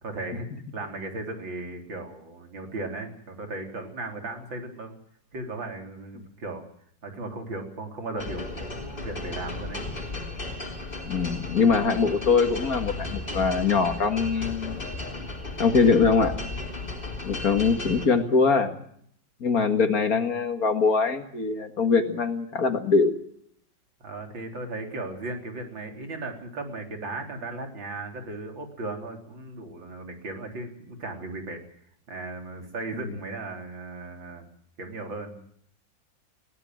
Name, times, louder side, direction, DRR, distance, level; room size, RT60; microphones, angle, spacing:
voice 1, 0.0-0.5 0.7-5.0 5.3-6.6 7.0-9.8 24.0-31.6 32.1-34.5 34.8-35.4, right 2 dB, 85° right, 4 dB, 4.4 m, -36 dB
sound 1, 8.2-18.1, left 2 dB, 25° left, 3.5 m, -35 dB
voice 2, 11.1-14.8 15.6-16.3 17.2-18.8 19.4-23.2, left 5 dB, 50° left, 8 dB, 2.1 m, -22 dB
21.5 x 17.5 x 7.7 m, 0.66 s
omnidirectional pair, 2.0 m